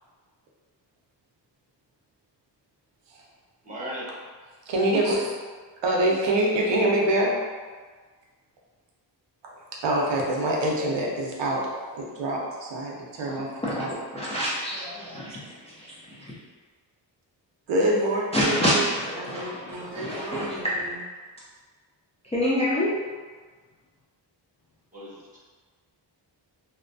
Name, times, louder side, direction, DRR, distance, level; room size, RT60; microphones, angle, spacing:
voice 1, 3.6-4.1 6.8-6.9 24.9-25.4, equal, 20° right, -9 dB, 1.0 m, -37 dB
voice 2, 4.7-5.3 5.8-7.3 9.4-9.6 9.8-11.6 11.9-13.5 13.8-13.9 17.7-18.9 19.1-21.0, right 1 dB, 75° right, -2 dB, 0.6 m, -26 dB
voice 3, 13.2-13.8 14.1-16.4 18.3-20.6 22.3-22.9, left 1 dB, 15° left, -9 dB, 0.4 m, -28 dB
2.5 x 2.1 x 2.5 m, 1.5 s
wide cardioid pair, 110°, 43 cm